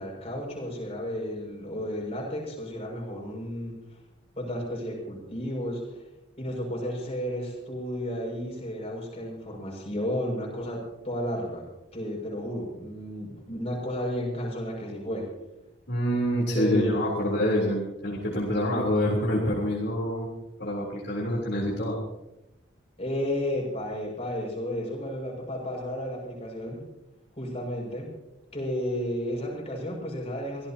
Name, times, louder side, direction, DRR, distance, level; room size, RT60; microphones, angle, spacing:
voice 1, 0.0-3.8 4.3-5.9 6.4-11.7 11.9-15.3 16.5-17.4 23.0-26.8 27.3-28.1 28.5-30.7, equal, 30° left, -2 dB, 6.5 m, -32 dB
voice 2, 15.9-20.3 20.6-22.0, equal, 60° left, -3 dB, 3.8 m, -26 dB
24.5 x 17.5 x 3.0 m, 0.89 s
head